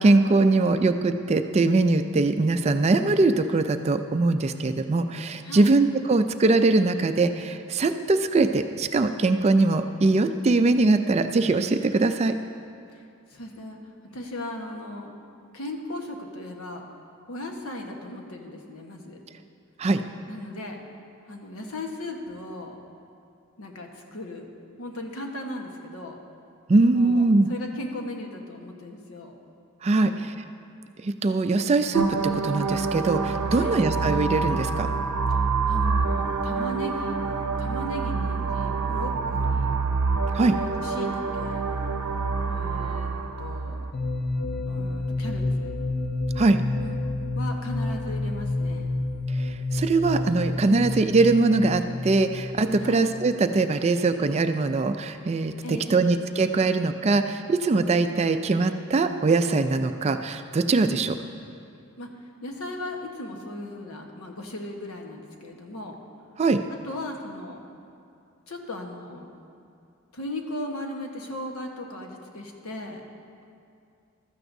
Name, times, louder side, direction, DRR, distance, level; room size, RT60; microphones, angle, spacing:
voice 1, 0.0-12.3 19.8-20.0 26.7-27.5 29.8-30.3 31.0-34.9 40.3-40.6 46.4-46.6 49.4-61.1 66.4-66.6, right 3 dB, 30° right, 8 dB, 0.3 m, -22 dB
voice 2, 13.3-13.8 14.1-15.1 15.5-16.8 17.3-19.2 20.3-20.8 21.3-22.8 23.6-24.5 24.8-26.2 26.9-29.4 29.9-30.4 33.5-33.8 35.3-37.2 37.6-39.7 40.5-41.6 42.5-43.1 43.4-43.9 44.6-45.7 46.8-47.0 47.3-48.9 52.8-53.0 55.6-56.1 60.8-61.2 62.0-62.1 62.4-66.0 66.7-67.6 68.5-69.4 70.1-73.0, left 1 dB, 75° left, 2 dB, 1.2 m, -37 dB
sound 1, 31.9-43.9, right 4 dB, 80° right, 0.7 m, -27 dB
sound 2, 43.9-53.6, left 2 dB, 45° left, 0.6 m, -29 dB
15.0 x 13.0 x 2.7 m, 2.5 s
head